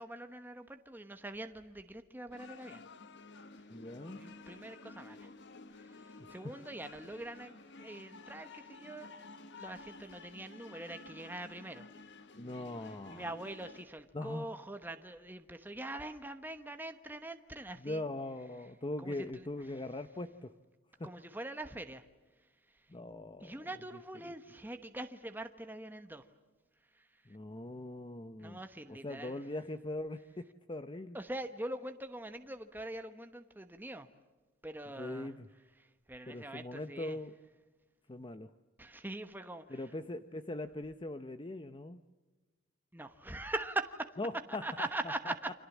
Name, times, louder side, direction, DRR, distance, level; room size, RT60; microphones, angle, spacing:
voice 1, 0.0-2.8 4.2-5.3 5.8-9.1 9.6-11.9 13.1-18.0 19.0-19.5 21.0-22.0 22.7-22.9 23.4-26.3 26.9-27.2 28.4-29.4 31.1-34.1 34.6-35.3 35.8-37.2 38.8-39.8 42.9-44.2 44.5-45.5, right 2 dB, 10° right, 7 dB, 1.1 m, -43 dB
sound 1, 2.3-13.9, left 3 dB, 60° left, 1.4 m, -52 dB
voice 2, 3.7-4.2 6.2-6.6 12.3-13.3 14.1-14.5 17.7-20.5 21.0-21.1 22.9-24.3 27.3-28.6 28.9-31.2 35.0-35.5 36.3-37.3 38.1-38.5 39.7-42.0 44.2-44.9 45.2-45.3, left 2 dB, 25° left, 10 dB, 0.8 m, -41 dB
29.5 x 26.5 x 7.3 m, 1.2 s
head